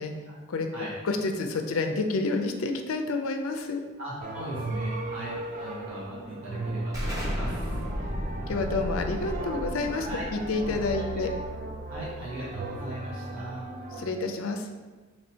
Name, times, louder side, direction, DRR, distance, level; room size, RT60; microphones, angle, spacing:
voice 1, 1.0-3.8 8.5-11.3 14.0-14.7, left 3 dB, 65° left, 5 dB, 0.4 m, -29 dB
voice 2, 4.0-7.8 10.1-10.2 11.9-13.7, right 1 dB, 80° right, -8 dB, 1.0 m, -39 dB
sound 1, 4.2-14.1, right 2 dB, 35° right, 0.3 m, -37 dB
Explosion, 6.9-12.4, equal, 15° right, 0.9 m, -34 dB
3.0 x 2.7 x 4.2 m, 1.3 s
head